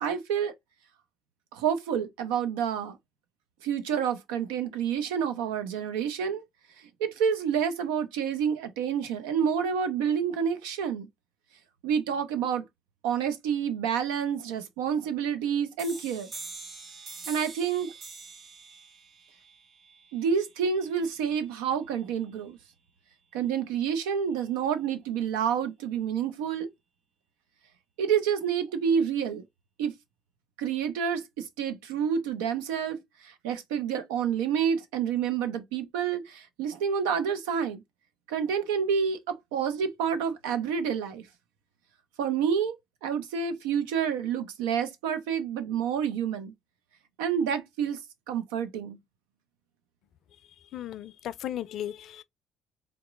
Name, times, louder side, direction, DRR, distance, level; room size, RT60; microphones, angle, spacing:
voice 1, 0.0-0.5 1.5-3.0 3.6-6.4 6.8-11.1 11.8-12.6 13.0-16.3 17.3-17.9 20.1-22.6 23.3-26.7 28.0-29.4 29.8-29.9 30.6-37.8 38.3-41.3 42.2-46.5 47.2-48.0 48.3-49.0, right 7 dB, 85° right, 0.7 m, -28 dB
sound 1, 15.8-21.2, right 4 dB, 60° right, 1.5 m, -45 dB
voice 2, 50.3-52.2, left 11 dB, 65° left, 0.3 m, -37 dB
3.5 x 3.0 x 3.5 m
supercardioid pair, 65°, 0 cm